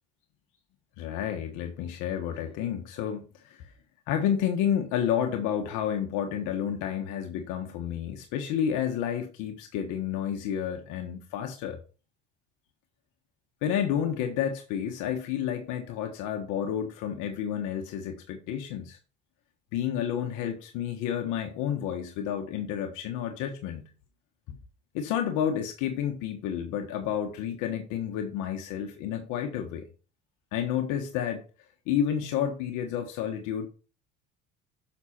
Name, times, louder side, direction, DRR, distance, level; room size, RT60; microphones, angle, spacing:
voice 1, 1.0-3.6 4.1-11.8 13.6-19.0 19.7-23.8 24.9-29.8 30.5-31.4 31.9-33.7, left 9 dB, 80° left, 1.3 m, -30 dB
6.6 x 6.1 x 4.3 m
supercardioid pair, 80°, 30 cm